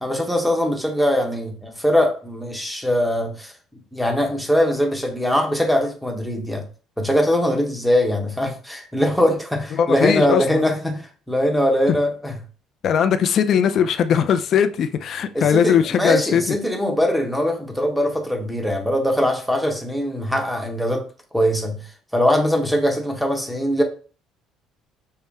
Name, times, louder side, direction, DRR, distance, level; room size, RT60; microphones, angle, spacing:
voice 1, 0.0-3.5 3.9-6.6 7.0-12.3 15.3-21.1 21.3-21.9 22.1-23.8, equal, ahead, 1.0 m, -21 dB
voice 2, 9.7-10.4 12.8-16.6, left 8 dB, 50° left, 0.4 m, -19 dB
5.5 x 2.1 x 3.5 m
cardioid pair, 120°, 0 cm